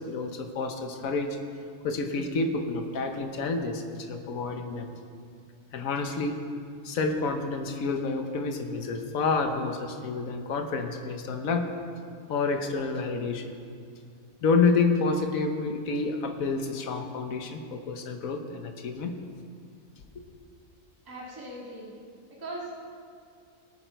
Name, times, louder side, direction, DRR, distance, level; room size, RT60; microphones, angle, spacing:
voice 1, 0.0-1.4 1.8-4.9 5.7-6.4 6.8-11.7 12.3-13.5 14.4-19.2 20.1-20.3, left 4 dB, 80° left, 5 dB, 1.4 m, -29 dB
voice 2, 21.1-21.9 22.4-22.9, right 1 dB, 15° right, -5 dB, 2.0 m, -39 dB
19.5 x 9.1 x 4.6 m, 2.2 s
omnidirectional pair, 1.4 m